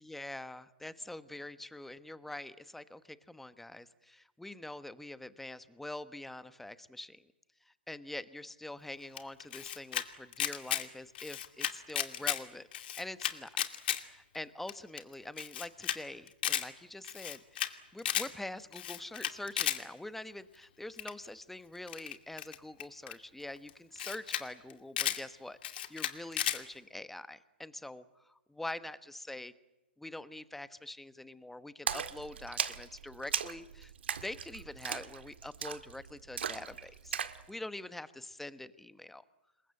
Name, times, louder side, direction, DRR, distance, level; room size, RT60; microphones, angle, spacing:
voice 1, 0.0-7.2 7.7-13.5 13.9-17.6 17.9-29.5 30.0-33.9 34.2-39.2, left 1 dB, 5° left, 14 dB, 1.1 m, -45 dB
Camera, 9.2-10.0 10.3-10.8 11.1-12.4 12.7-14.0 14.3-14.4 14.7-14.8 15.0-15.1 15.4-16.0 16.3-16.6 17.0-17.7 18.0-18.3 18.7-19.8 21.0-21.3 21.9-23.1 23.7-23.8 24.0-24.4 24.7-25.2 25.6-26.6, left 11 dB, 60° left, 2.4 m, -34 dB
Splash splatter, 31.9-37.4, right 8 dB, 75° right, 1.8 m, -38 dB
27.5 x 22.5 x 7.8 m, 1.0 s
hypercardioid pair, 130°, 6 cm